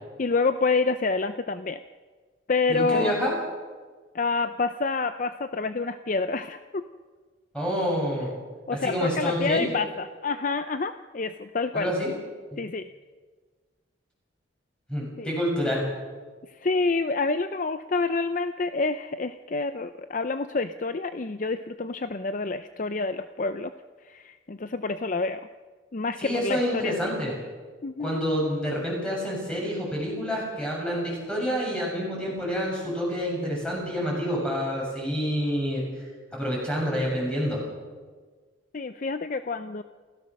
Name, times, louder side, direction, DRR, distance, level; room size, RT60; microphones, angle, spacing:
voice 1, 0.2-1.8 2.5-3.1 4.1-6.8 8.7-11.9 12.6-12.9 15.2-15.4 16.5-23.7 24.0-25.4 25.9-26.9 27.8-28.2 38.7-39.8, left 3 dB, 40° left, 10 dB, 0.5 m, -28 dB
voice 2, 2.7-3.3 7.5-8.3 8.8-9.6 11.7-12.1 14.9-15.8 26.2-27.3 28.0-35.8 36.3-37.6, equal, 5° left, -3 dB, 7.4 m, -28 dB
28.0 x 16.0 x 6.4 m, 1.5 s
head